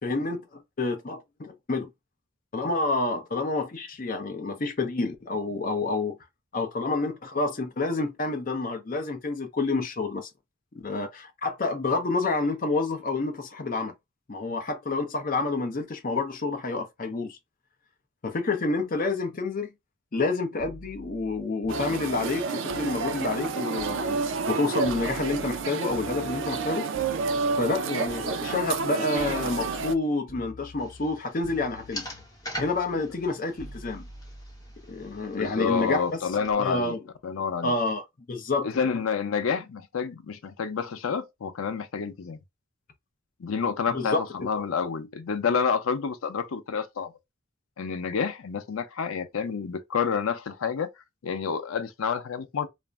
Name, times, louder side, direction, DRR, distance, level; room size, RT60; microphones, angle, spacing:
voice 1, 0.0-1.9 2.5-6.2 6.5-10.3 10.8-13.9 14.3-17.4 18.2-19.7 20.1-24.2 24.5-26.9 27.6-32.1 32.6-34.1 34.9-36.0 36.6-37.0 37.6-38.7 43.9-44.2, left 3 dB, 40° left, 0.6 m, -28 dB
sound 1, 20.6-24.5 24.8-28.9 29.2-30.0 30.3-31.2 31.4-35.4 36.6-36.9, equal, 60° left, 1.0 m, -46 dB
sound 2, 21.7-29.9, right 4 dB, 65° right, 0.3 m, -30 dB
sound 3, 30.8-36.5, equal, 20° left, 0.9 m, -43 dB
voice 2, 35.3-36.9 37.2-37.7 38.6-42.4 43.4-47.1 47.8-50.9 51.2-52.7, left 6 dB, 85° left, 0.5 m, -29 dB
2.5 x 2.0 x 3.2 m
head